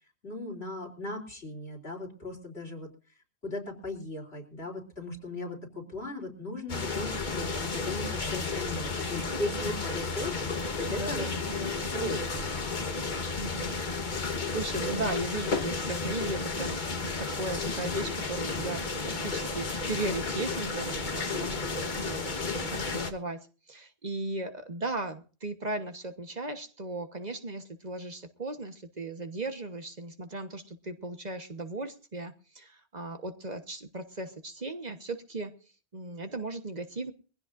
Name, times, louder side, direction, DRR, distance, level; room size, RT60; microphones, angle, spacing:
voice 1, 0.2-2.9 3.4-11.3 11.6-12.5, left 2 dB, 70° left, -2 dB, 3.9 m, -37 dB
sound 1, 6.7-23.1, left 4 dB, 45° left, 1.4 m, -32 dB
voice 2, 10.9-11.7 13.4-13.8 14.0-22.2 22.6-35.5 35.9-37.1, right 2 dB, 40° right, 6 dB, 1.3 m, -37 dB
23.0 x 15.5 x 2.6 m, 0.38 s
omnidirectional pair, 1.1 m